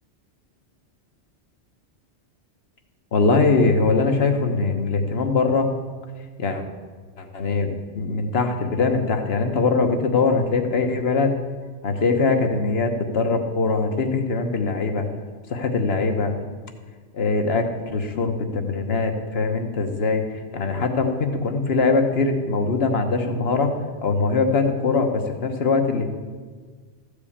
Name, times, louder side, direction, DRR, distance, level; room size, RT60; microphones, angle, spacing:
voice 1, 3.1-5.7 6.4-6.6 7.2-11.3 11.8-15.1 15.5-16.3 17.1-17.7 17.9-23.7 24.0-26.1, left 4 dB, 60° left, 5 dB, 1.3 m, -22 dB
14.0 x 5.0 x 8.6 m, 1.5 s
omnidirectional pair, 1.2 m